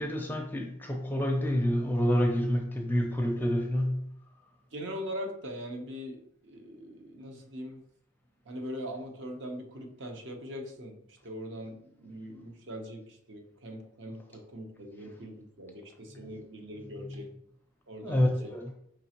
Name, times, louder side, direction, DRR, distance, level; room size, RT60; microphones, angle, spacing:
voice 1, 0.0-4.1 18.0-18.7, equal, 10° left, 2 dB, 0.5 m, -28 dB
voice 2, 4.7-7.8 8.5-17.3 17.9-18.5, equal, 60° right, 3 dB, 0.8 m, -41 dB
5.2 x 3.1 x 2.9 m, 0.72 s
head